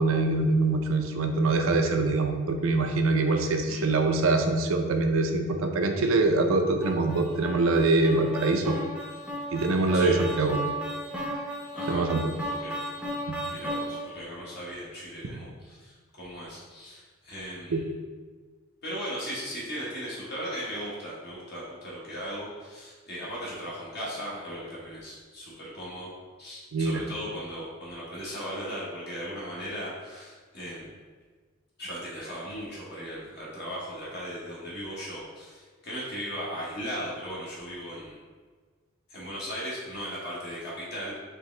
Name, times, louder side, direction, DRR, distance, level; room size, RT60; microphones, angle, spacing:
voice 1, 0.0-8.8 9.5-10.6 11.9-12.3 13.3-13.4 17.7-17.8 26.7-27.0, right 3 dB, 75° right, 5 dB, 0.5 m, -24 dB
sound 1, 6.8-14.2, right 1 dB, 5° right, 0.6 m, -35 dB
voice 2, 11.7-12.0 12.5-12.8 13.5-17.8 18.8-26.1 26.4-30.9 31.8-38.2 39.1-41.1, equal, 50° left, -7 dB, 1.1 m, -37 dB
4.7 x 3.0 x 3.3 m, 1.4 s
head